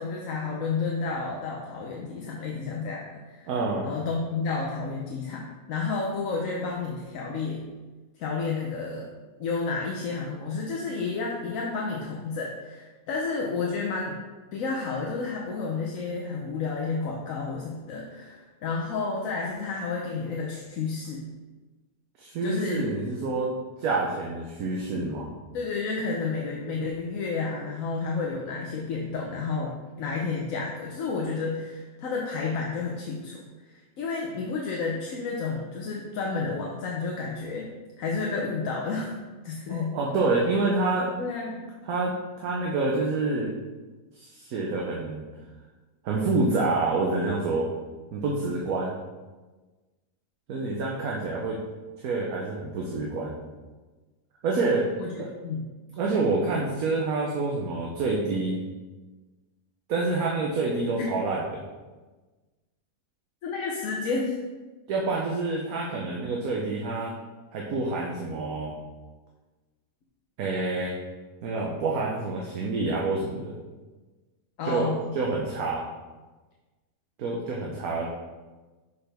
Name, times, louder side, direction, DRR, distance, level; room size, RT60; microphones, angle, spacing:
voice 1, 0.0-3.5 3.8-7.6 8.2-9.0 9.4-14.2 14.5-21.2 22.4-22.9 25.5-33.4 33.7-37.7 38.0-39.1 39.4-40.0 41.2-41.7 55.0-55.6 63.4-64.4 74.6-75.1, left 4 dB, 65° left, -1 dB, 1.1 m, -31 dB
voice 2, 3.5-3.9 22.2-25.3 39.7-41.1 41.8-43.6 44.1-45.2 46.0-47.7 48.1-48.9 50.5-51.6 52.0-53.4 54.4-54.9 55.2-55.3 56.0-58.6 59.9-61.6 64.9-67.1 67.5-68.7 70.4-71.0 71.4-73.6 74.6-75.9 77.2-78.1, right 3 dB, 70° right, -2 dB, 1.2 m, -27 dB
5.9 x 5.5 x 3.4 m, 1.2 s
omnidirectional pair, 1.6 m